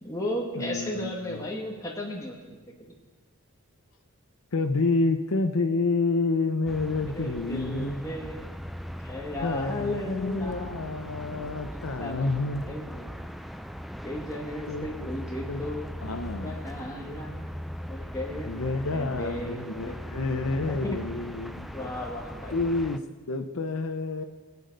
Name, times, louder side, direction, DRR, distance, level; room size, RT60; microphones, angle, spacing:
voice 1, 0.0-2.6 2.9-3.0 7.1-8.4 9.0-10.9 11.7-13.2 14.0-15.9 16.4-17.5 17.9-20.1 20.7-21.0 21.7-22.6, left 1 dB, 15° left, -1 dB, 1.4 m, -35 dB
voice 2, 0.6-1.4 4.5-8.0 9.4-12.7 14.7-14.9 15.5-15.6 16.0-16.6 18.5-21.9 22.5-23.0 23.3-24.2, left 3 dB, 75° left, 5 dB, 0.8 m, -29 dB
sound 1, 6.7-23.0, equal, ahead, 0.4 m, -39 dB
21.0 x 8.5 x 5.2 m, 1.4 s
head